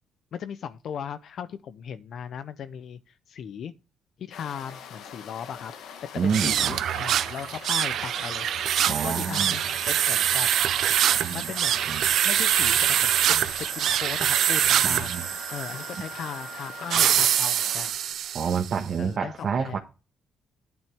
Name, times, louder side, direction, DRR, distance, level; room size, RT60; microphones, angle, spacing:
voice 1, 0.3-3.7 4.2-5.7 6.2-10.5 11.3-15.2 15.5-17.9 19.0-19.8, left 8 dB, 65° left, 0.6 m, -37 dB
sound 1, 4.3-17.9, left 7 dB, 85° left, 1.2 m, -43 dB
voice 2, 6.2-6.8 8.8-9.6 11.2-11.5 11.9-12.1 14.9-15.3 18.3-19.8, right 6 dB, 55° right, 1.3 m, -28 dB
automatic-gas-actuator, 6.2-18.7, right 10 dB, 75° right, 0.6 m, -24 dB
9.3 x 8.3 x 3.4 m
cardioid pair, 90°, 0 cm